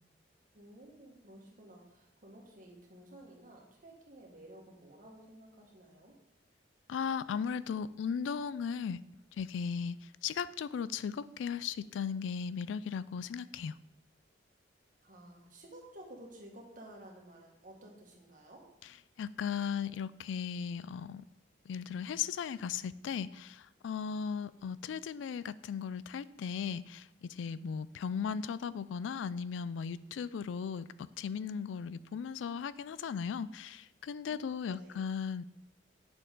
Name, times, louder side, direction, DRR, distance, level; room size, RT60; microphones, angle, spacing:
voice 1, 0.5-6.2 15.0-18.6 34.3-35.0, right 1 dB, 45° right, -1 dB, 1.8 m, -53 dB
voice 2, 6.9-9.0 9.4-10.0 10.2-13.7 19.2-21.2 21.7-27.0 27.4-30.8 31.2-35.4, left 6 dB, 85° left, 17 dB, 0.3 m, -37 dB
8.5 x 6.6 x 3.8 m, 0.85 s
head